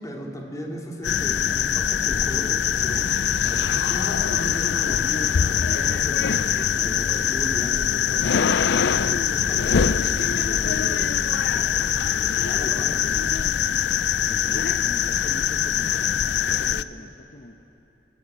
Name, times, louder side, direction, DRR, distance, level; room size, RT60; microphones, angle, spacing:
voice 1, 0.0-13.3, equal, 20° left, 0 dB, 2.9 m, -36 dB
sound 1, 1.0-16.8, left 8 dB, 70° left, 0.5 m, -23 dB
voice 2, 14.3-16.1 16.4-17.6, left 1 dB, 45° left, 3 dB, 1.0 m, -41 dB
22.0 x 18.5 x 8.8 m, 3.0 s
head